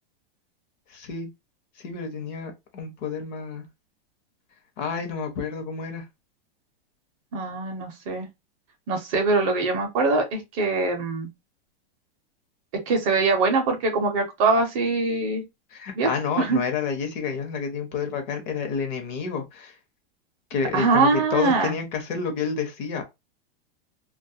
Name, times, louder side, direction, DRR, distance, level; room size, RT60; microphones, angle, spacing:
voice 1, 0.9-1.3 1.8-3.6 4.8-6.0 15.7-19.7 20.5-23.0, left 6 dB, 50° left, 0.8 m, -29 dB
voice 2, 7.3-8.3 8.9-11.3 12.9-15.4 16.0-16.1 16.4-16.6 20.7-21.7, right 3 dB, 35° right, 0.6 m, -23 dB
2.3 x 2.1 x 2.6 m
supercardioid pair, 160°, 30 cm